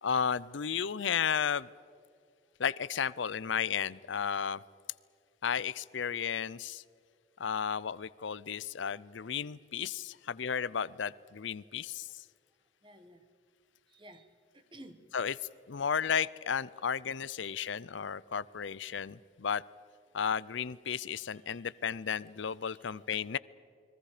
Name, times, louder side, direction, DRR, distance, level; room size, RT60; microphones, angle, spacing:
voice 1, 0.0-1.7 2.6-4.6 5.4-6.8 7.4-12.2 15.1-15.3 15.7-19.6 20.1-23.4, left 7 dB, 70° left, 19 dB, 0.5 m, -33 dB
voice 2, 12.8-13.2 13.9-14.3 14.5-15.0 17.4-17.7 21.5-21.6 22.7-23.0, right 1 dB, 25° right, 9 dB, 1.5 m, -54 dB
29.5 x 22.0 x 5.0 m, 2.3 s
head